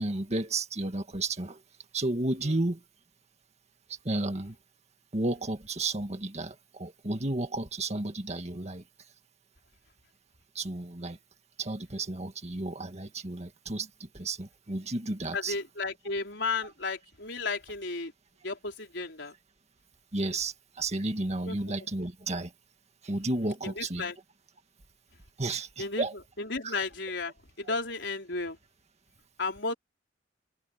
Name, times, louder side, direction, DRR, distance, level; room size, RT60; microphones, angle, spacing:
voice 1, 0.0-1.6 1.9-2.8 4.0-4.6 5.1-8.8 10.6-11.2 11.6-15.6 20.1-22.5 23.0-24.1 25.4-26.1 26.6-26.8, right 2 dB, 40° right, 1.9 m, -32 dB
voice 2, 15.3-18.1 18.4-19.3 21.5-21.6 23.6-24.2 25.8-26.1 26.4-28.6 29.4-29.7, left 3 dB, 75° left, 4.2 m, -33 dB
head